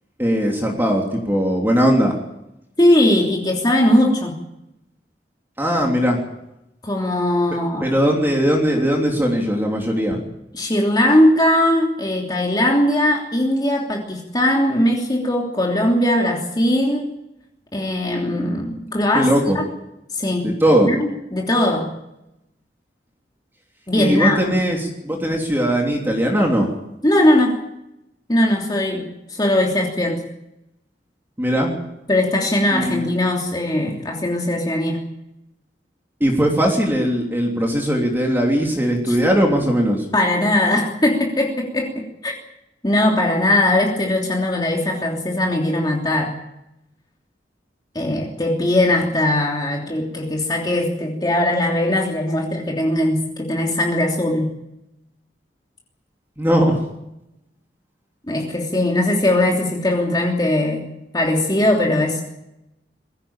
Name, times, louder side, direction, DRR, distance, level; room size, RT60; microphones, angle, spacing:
voice 1, 0.2-2.1 5.6-6.2 7.8-10.2 19.1-19.6 20.4-20.9 24.0-26.7 31.4-31.7 32.7-33.1 36.2-40.0 56.4-56.8, equal, 10° right, 0 dB, 3.3 m, -19 dB
voice 2, 2.8-4.3 6.8-7.9 10.5-17.1 17.7-19.6 20.1-20.5 20.9-21.9 23.9-24.4 27.0-27.6 28.3-30.2 32.1-35.0 39.1-39.2 40.1-42.3 42.8-46.3 47.9-54.5 58.3-60.8 61.1-62.2, left 1 dB, 25° left, -1 dB, 3.1 m, -19 dB
22.0 x 16.5 x 8.9 m, 0.87 s
head